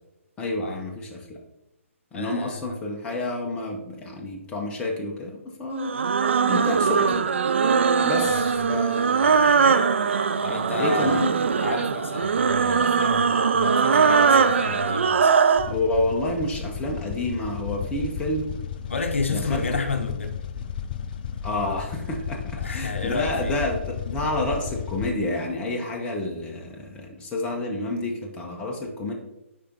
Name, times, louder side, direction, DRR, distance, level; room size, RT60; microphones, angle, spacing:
voice 1, 0.4-1.4 2.1-6.0 6.5-7.3 8.0-9.5 10.8-11.3 15.7-18.5 19.3-19.6 21.4-29.1, left 2 dB, 10° left, 1 dB, 0.8 m, -29 dB
voice 2, 2.1-2.8 8.1-8.6 10.4-11.2 11.6-15.3 18.9-20.4 22.6-23.6, left 4 dB, 60° left, 6 dB, 0.8 m, -31 dB
sound 1, 5.8-15.7, right 5 dB, 60° right, 0.4 m, -21 dB
sound 2, 15.5-25.1, left 7 dB, 40° left, 0.4 m, -33 dB
8.3 x 5.0 x 2.9 m, 0.94 s
figure-of-eight pair, 130°, 7 cm